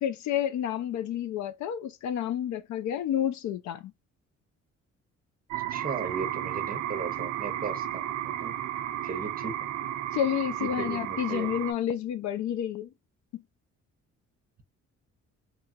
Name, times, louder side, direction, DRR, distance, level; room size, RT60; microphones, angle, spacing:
voice 1, 0.0-3.9 10.1-12.9 13.3-13.4, left 10 dB, 70° left, 0.5 m, -30 dB
sound 1, 5.5-11.7, right 11 dB, 70° right, 0.4 m, -33 dB
voice 2, 5.7-8.0 8.4-8.5 9.0-9.5 10.6-11.5, right 4 dB, 30° right, 0.8 m, -36 dB
3.0 x 2.3 x 2.6 m
cardioid pair, 90°, 30 cm